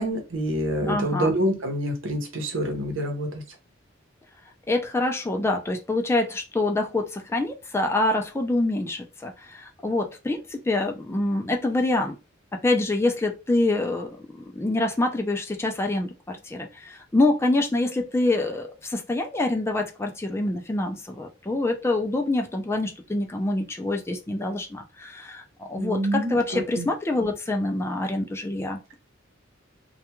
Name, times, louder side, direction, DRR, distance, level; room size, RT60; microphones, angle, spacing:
voice 1, 0.0-3.4 25.8-26.9, right 1 dB, 90° right, 0.8 m, -27 dB
voice 2, 0.9-1.3 4.7-12.2 12.5-29.0, left 2 dB, 15° left, 0.4 m, -26 dB
2.3 x 2.2 x 2.9 m
head